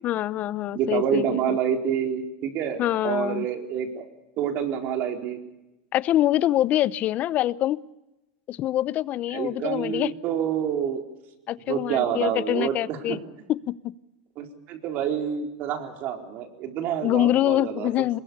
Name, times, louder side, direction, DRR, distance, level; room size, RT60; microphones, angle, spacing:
voice 1, 0.0-1.6 2.8-3.5 5.9-7.8 8.5-10.1 11.5-13.2 13.5-13.7 17.0-18.2, left 13 dB, 40° left, 20 dB, 0.8 m, -25 dB
voice 2, 0.7-4.1 4.4-5.4 9.3-11.0 11.7-13.2 14.4-17.9, right 8 dB, 50° right, 4 dB, 4.2 m, -27 dB
23.0 x 21.5 x 7.0 m, 0.97 s
supercardioid pair, 120°, 4 cm